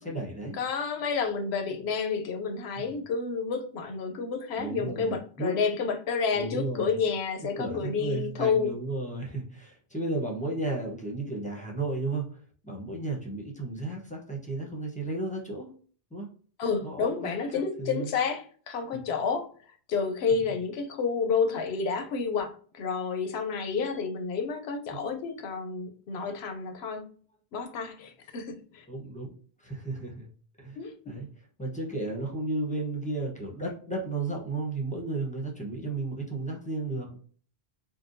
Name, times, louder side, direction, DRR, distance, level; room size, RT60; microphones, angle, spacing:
voice 1, 0.0-0.6 2.8-2.9 4.6-5.6 6.3-6.9 7.6-12.4 12.6-15.7 16.1-16.3 16.8-18.1 18.9-19.0 24.9-25.0 28.9-29.3 29.6-30.3 30.6-30.8 31.1-31.3 31.6-37.2, right 2 dB, 10° left, 0.7 m, -33 dB
voice 2, 0.6-8.7 16.6-19.5 19.9-27.1 27.5-28.9 30.8-31.1, left 5 dB, 80° left, 0.8 m, -30 dB
3.7 x 2.2 x 2.6 m
omnidirectional pair, 1.1 m